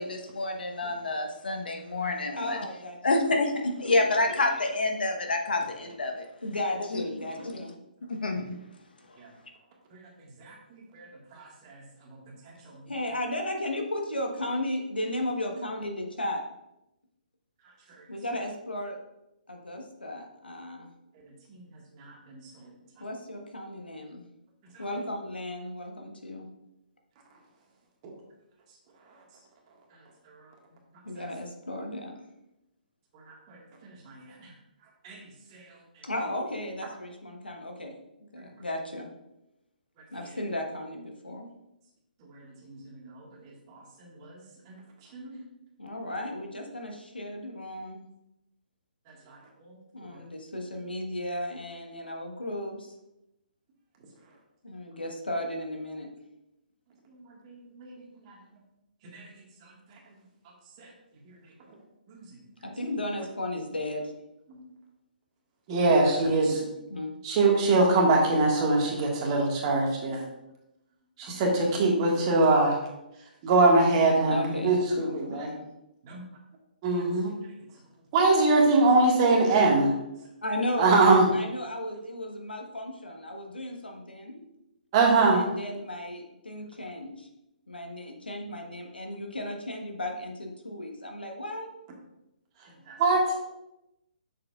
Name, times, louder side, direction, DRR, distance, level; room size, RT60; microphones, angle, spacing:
voice 1, 0.0-2.7 3.0-6.2 6.9-7.0 7.4-7.5 8.1-8.6, left 2 dB, 70° left, 3 dB, 1.1 m, -28 dB
voice 2, 2.3-3.0 3.6-4.3 6.4-7.7 12.9-16.4 18.1-19.0 19.5-20.9 23.0-24.2 24.8-26.5 31.0-32.1 36.0-38.0 38.3-39.1 40.1-41.5 45.8-48.1 49.9-52.8 54.6-56.1 62.6-64.1 66.5-67.1 74.3-75.7 80.4-81.0 81.3-84.4 85.3-87.3 87.7-91.7, left 1 dB, 90° left, 2 dB, 1.3 m, -35 dB
voice 3, 65.7-66.6 67.2-70.2 71.2-72.8 73.4-75.5 76.1-76.2 76.8-77.3 78.1-79.9 80.8-81.2 84.9-85.4 92.9-93.3, right 3 dB, 35° right, -1 dB, 1.7 m, -22 dB
7.5 x 6.7 x 2.4 m, 0.89 s
figure-of-eight pair, 135°, 5 cm